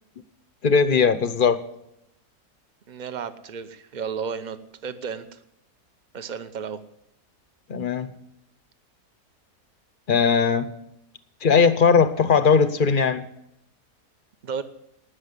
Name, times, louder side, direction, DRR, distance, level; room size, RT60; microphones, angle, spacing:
voice 1, 0.6-1.6 7.7-8.1 10.1-10.7 11.4-13.2, left 5 dB, 45° left, 12 dB, 0.7 m, -19 dB
voice 2, 2.9-4.6 4.8-5.4 6.1-6.8 14.4-14.6, right 6 dB, 40° right, 11 dB, 0.7 m, -33 dB
19.0 x 6.4 x 8.2 m, 0.82 s
omnidirectional pair, 1.7 m